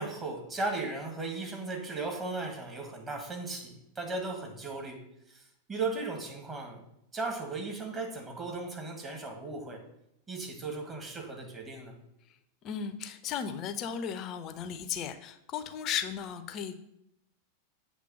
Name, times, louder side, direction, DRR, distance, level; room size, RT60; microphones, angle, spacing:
voice 1, 0.0-5.0 5.3-5.4 5.7-6.8 7.1-9.8 10.3-11.9, right 3 dB, 20° right, 1 dB, 1.8 m, -36 dB
voice 2, 12.6-16.7, left 8 dB, 35° left, 10 dB, 0.6 m, -35 dB
7.6 x 3.4 x 6.3 m, 0.80 s
figure-of-eight pair, 90°, 0 cm